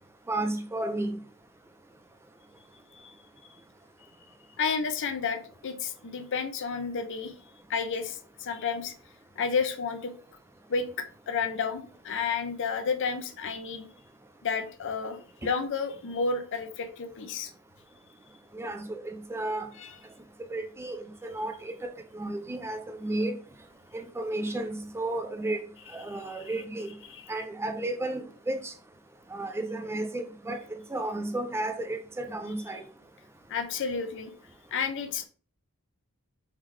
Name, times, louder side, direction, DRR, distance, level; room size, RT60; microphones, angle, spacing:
voice 1, 0.3-1.2 18.5-19.7 20.5-23.4 23.9-25.6 25.9-26.9 27.3-28.7 29.3-30.6 30.9-32.9, right 2 dB, 10° right, 0.3 m, -33 dB
voice 2, 4.6-7.3 7.7-8.9 9.4-10.1 10.7-13.9 14.4-17.5 19.8-19.9 26.1-26.5 33.5-34.3 34.7-35.3, left 5 dB, 60° left, 0.5 m, -31 dB
3.6 x 3.2 x 3.1 m
head